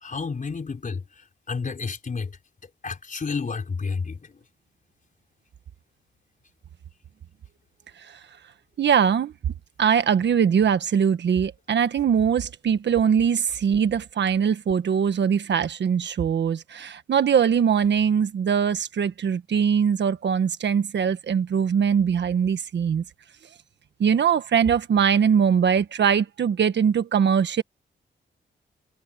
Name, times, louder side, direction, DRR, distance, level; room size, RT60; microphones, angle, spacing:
voice 1, 0.0-2.3 2.8-4.3, left 5 dB, 45° left, 4.4 m, -31 dB
voice 2, 8.8-9.3 9.8-23.0 24.0-27.6, right 7 dB, 70° right, 1.5 m, -22 dB
cardioid pair, 85°, 19 cm